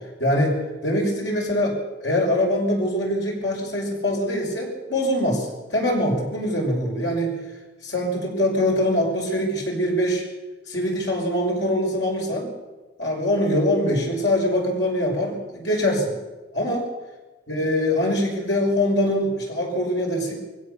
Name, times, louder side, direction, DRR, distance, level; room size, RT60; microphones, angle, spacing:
voice 1, 0.2-7.4 7.8-10.2 10.7-12.5 13.0-16.2 16.5-16.9 17.5-20.3, left 1 dB, 75° left, -1 dB, 6.3 m, -23 dB
22.0 x 16.5 x 7.1 m, 1.2 s
head